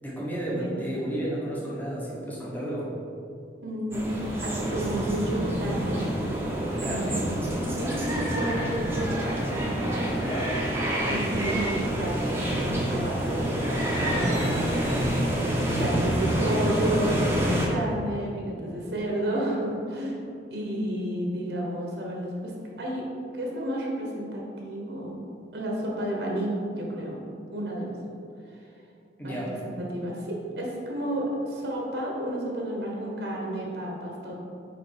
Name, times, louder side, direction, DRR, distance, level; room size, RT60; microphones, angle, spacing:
voice 1, 0.0-2.9 6.7-7.2 10.2-10.6 29.2-29.6, right 1 dB, 10° left, -5 dB, 1.2 m, -32 dB
voice 2, 3.6-6.1 6.8-7.2 7.5-9.8 11.1-15.1 15.6-20.2 20.5-22.5 22.8-23.0 23.3-25.2 25.5-27.2 27.5-28.0 29.2-34.4, right 1 dB, 70° right, -2 dB, 1.1 m, -31 dB
sound 1, 3.9-17.7, right 1 dB, 15° right, 0.9 m, -27 dB
5.2 x 4.5 x 4.9 m, 2.6 s
head